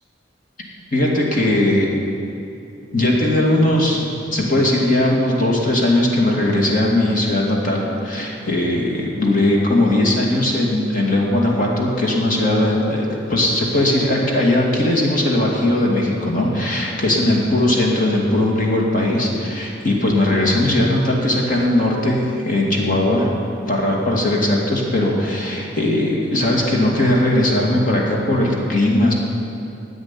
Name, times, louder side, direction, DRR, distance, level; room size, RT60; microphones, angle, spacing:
voice 1, 0.9-1.9 2.9-23.3 23.7-29.1, left 1 dB, 45° left, -2 dB, 2.3 m, -19 dB
11.0 x 7.9 x 9.9 m, 2.8 s
head